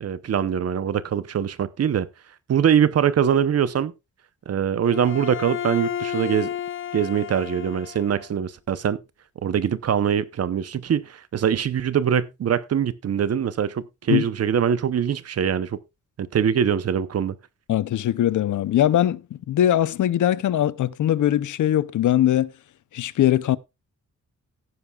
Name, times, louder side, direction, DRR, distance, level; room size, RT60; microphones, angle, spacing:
voice 1, 0.0-2.1 2.5-3.9 4.5-6.5 6.9-9.0 9.4-15.8 16.2-17.4, right 8 dB, 55° right, 0.8 m, -23 dB
Bowed string instrument, 4.8-8.3, left 10 dB, 45° left, 0.6 m, -32 dB
voice 2, 17.7-22.5 22.9-23.6, left 12 dB, 80° left, 0.6 m, -21 dB
16.0 x 9.7 x 2.4 m
wide cardioid pair, 145°, 30 cm